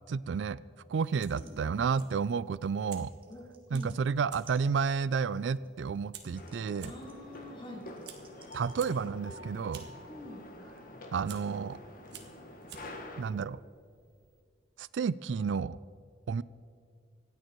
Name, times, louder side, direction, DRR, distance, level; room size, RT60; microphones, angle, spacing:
voice 1, 0.1-0.6 0.9-3.1 3.7-6.9 8.5-9.8 11.1-11.8 13.2-13.6 14.8-15.8 16.3-16.4, right 5 dB, 85° right, 20 dB, 0.4 m, -31 dB
Fire, 1.0-14.4, right 7 dB, 70° right, 1.6 m, -55 dB
sound 1, 1.4-1.6 1.8-4.0 4.5-9.2 9.7-9.9 10.7-10.8, right 6 dB, 30° right, 1.8 m, -61 dB
voice 2, 3.3-4.0 6.8-7.8 10.1-10.4, left 1 dB, 30° left, -1 dB, 2.9 m, -46 dB
sound 2, 6.3-13.2, left 1 dB, 50° left, 1.8 m, -47 dB
26.0 x 9.3 x 4.6 m, 2.3 s
head